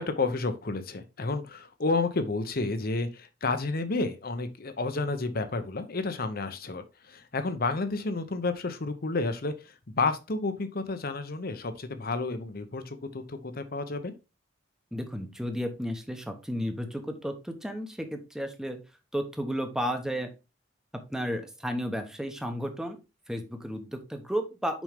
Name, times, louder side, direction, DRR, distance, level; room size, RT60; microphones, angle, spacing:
voice 1, 0.0-14.1, left 3 dB, 50° left, 0.9 m, -31 dB
voice 2, 14.9-18.8 19.1-20.3 21.1-23.0 23.3-24.8, equal, 5° right, 1.0 m, -33 dB
6.1 x 5.4 x 3.5 m
head